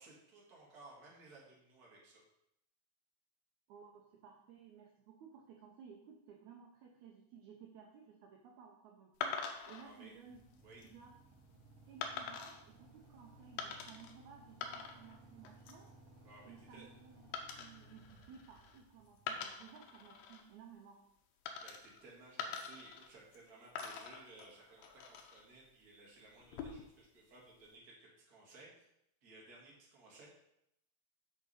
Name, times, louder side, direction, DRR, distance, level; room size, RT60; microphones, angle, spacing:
voice 1, 0.0-2.2 9.8-10.1 10.6-10.8 16.2-16.9 21.6-28.9 29.2-30.3, right 2 dB, 35° right, -3 dB, 1.8 m, -58 dB
voice 2, 3.7-9.3 9.7-10.4 10.8-11.1 11.8-15.9 16.4-17.3 17.6-21.0, right 7 dB, 80° right, 1 dB, 1.7 m, -57 dB
sound 1, 9.2-9.8 10.5-10.9 12.0-12.6 13.6-14.1 14.4-15.2 15.5-15.9 17.3-18.8 19.2-20.4 21.5-22.0 22.4-23.4 23.8-25.4 26.4-27.0, left 5 dB, 85° left, 2.7 m, -45 dB
Motorcycle / Idling, 10.3-20.2, right 1 dB, 55° right, 2.0 m, -61 dB
6.5 x 6.4 x 4.1 m, 0.78 s
omnidirectional pair, 4.2 m